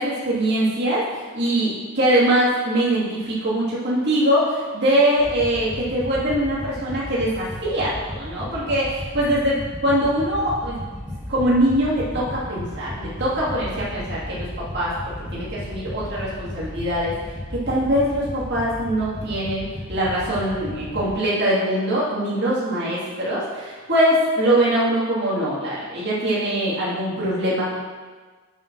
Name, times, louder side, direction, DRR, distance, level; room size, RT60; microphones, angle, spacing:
voice 1, 0.0-10.8 11.3-14.9 15.3-17.1 17.5-27.8, right 1 dB, 50° right, -7 dB, 2.6 m, -22 dB
sound 1, 5.2-21.1, left 1 dB, 5° right, 1.8 m, -34 dB
7.3 x 5.2 x 6.1 m, 1.4 s
head